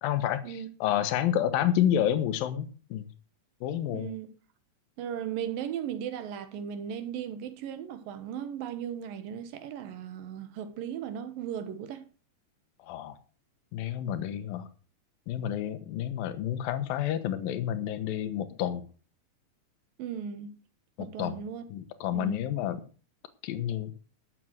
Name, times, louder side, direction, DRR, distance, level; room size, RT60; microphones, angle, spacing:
voice 1, 0.0-3.1 3.6-4.1 12.8-13.2 13.7-14.7 15.3-18.9 21.0-21.4 21.7-22.8 23.4-23.9, left 11 dB, 75° left, 2.8 m, -29 dB
voice 2, 3.9-4.3 5.0-12.0 20.0-20.5 21.0-21.7 22.1-22.4, right 8 dB, 75° right, 2.9 m, -36 dB
12.5 x 7.8 x 6.3 m
omnidirectional pair, 4.2 m